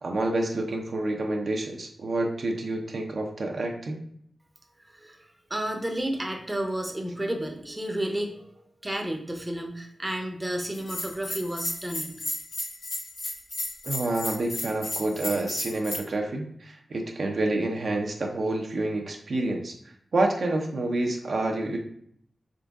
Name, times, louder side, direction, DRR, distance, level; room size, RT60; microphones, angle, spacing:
voice 1, 0.0-4.0 13.8-19.7 20.1-21.8, right 2 dB, 65° right, 2 dB, 0.7 m, -28 dB
voice 2, 4.8-12.1, right 1 dB, 15° right, 2 dB, 0.7 m, -32 dB
Bell, 10.7-16.0, left 1 dB, 80° left, 1.5 m, -33 dB
3.9 x 3.6 x 3.5 m, 0.65 s
wide cardioid pair, 85°, 0 cm